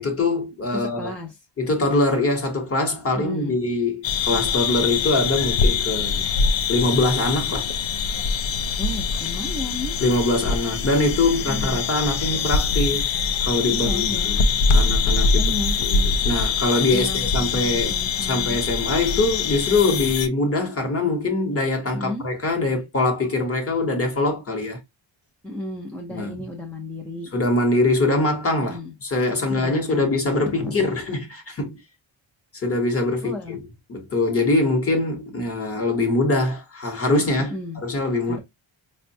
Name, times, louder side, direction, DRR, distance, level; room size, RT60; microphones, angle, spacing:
voice 1, 0.0-1.1 1.6-6.3 6.7-7.7 10.0-13.1 13.4-14.4 14.7-15.4 15.8-17.9 18.2-24.8 26.1-26.4 27.3-31.8 32.6-33.6 33.9-37.5 37.8-38.4, left 2 dB, 30° left, 0.8 m, -23 dB
voice 2, 0.7-1.3 3.1-3.6 8.8-10.0 11.5-11.8 13.7-14.3 15.2-15.8 16.9-18.6 21.9-22.2 25.4-27.3 28.6-28.9 29.5-30.8 33.2-33.6 37.4-37.8 38.3-38.4, left 2 dB, 5° left, 0.4 m, -33 dB
sound 1, 4.0-20.3, left 5 dB, 70° left, 0.5 m, -23 dB
4.4 x 2.1 x 2.5 m
wide cardioid pair, 170°, 47 cm